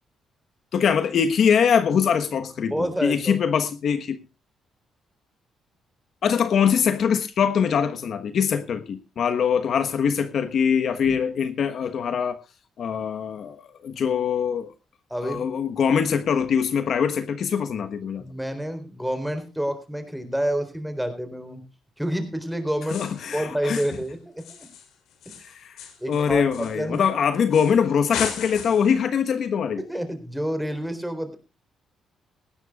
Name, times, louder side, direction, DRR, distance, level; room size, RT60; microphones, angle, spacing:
voice 1, 0.7-4.2 6.2-12.4 12.8-14.7 15.2-18.2 22.9-23.8 25.4-25.7 26.1-29.8, left 7 dB, 60° left, 1.2 m, -23 dB
voice 2, 2.7-3.4 15.1-15.4 18.2-21.6 22.0-23.0 23.3-24.7 25.3-25.4 26.0-27.0 29.8-31.4, equal, 5° right, 3.9 m, -28 dB
sound 1, 22.8-23.3 23.7-24.1 24.4-27.1 27.5-27.8 28.1-29.0, left 8 dB, 80° left, 3.5 m, -36 dB
18.5 x 15.5 x 2.4 m
cardioid pair, 90°, 0 cm